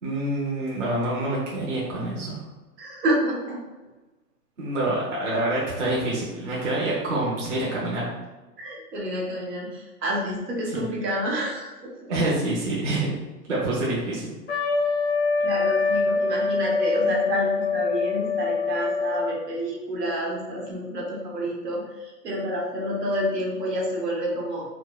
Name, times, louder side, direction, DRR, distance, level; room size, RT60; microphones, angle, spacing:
voice 1, 0.0-2.4 4.6-8.1 10.7-10.9 12.1-13.2 13.5-14.3, right 1 dB, 50° right, -6 dB, 0.9 m, -26 dB
voice 2, 2.8-3.6 8.6-12.2 15.4-24.6, equal, 80° right, -3 dB, 1.3 m, -29 dB
Trumpet, 14.5-19.5, left 4 dB, 45° left, 0.5 m, -25 dB
4.6 x 2.2 x 2.3 m, 1.2 s
hypercardioid pair, 180°, 49 cm